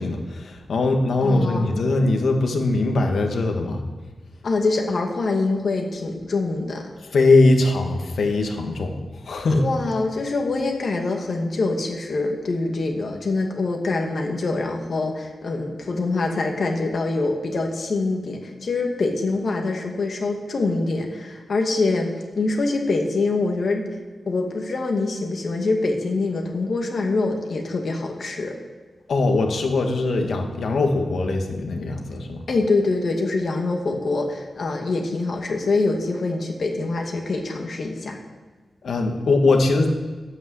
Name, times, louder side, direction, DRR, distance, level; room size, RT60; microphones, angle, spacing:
voice 1, 0.0-3.8 7.1-9.6 29.1-32.5 38.8-39.9, left 2 dB, 75° left, 3 dB, 1.9 m, -21 dB
voice 2, 1.2-1.9 4.4-6.9 9.5-22.1 22.4-23.8 24.3-28.6 32.5-38.2, left 3 dB, 60° left, 2 dB, 1.8 m, -24 dB
11.5 x 8.9 x 7.8 m, 1.4 s
wide cardioid pair, 135°, 0 cm